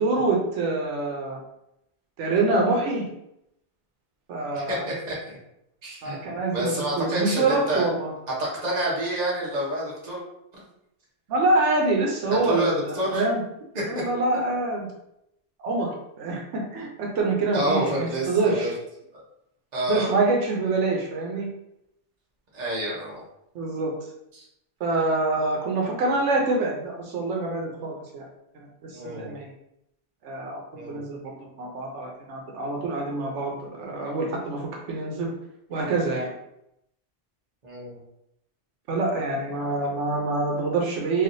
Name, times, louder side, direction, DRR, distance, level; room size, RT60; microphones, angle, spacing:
voice 1, 0.0-1.4 2.2-3.0 4.3-4.8 6.0-8.1 11.3-13.4 13.9-14.9 15.6-18.7 19.9-21.5 23.5-23.9 24.8-28.3 28.8-29.5 30.2-35.3 35.7-36.3 38.9-41.2, right 3 dB, 80° right, -1 dB, 1.0 m, -26 dB
voice 2, 4.5-5.4 5.8-6.2 6.5-7.9 8.4-10.2 10.5-10.6 12.3-13.2 17.5-18.7 19.1-19.2 19.7-20.1 22.5-23.2 24.3-24.4 28.9-29.4 30.7-31.0 37.6-38.0, right 1 dB, 40° right, -5 dB, 1.0 m, -28 dB
3.3 x 2.4 x 2.6 m, 0.80 s
omnidirectional pair, 1.2 m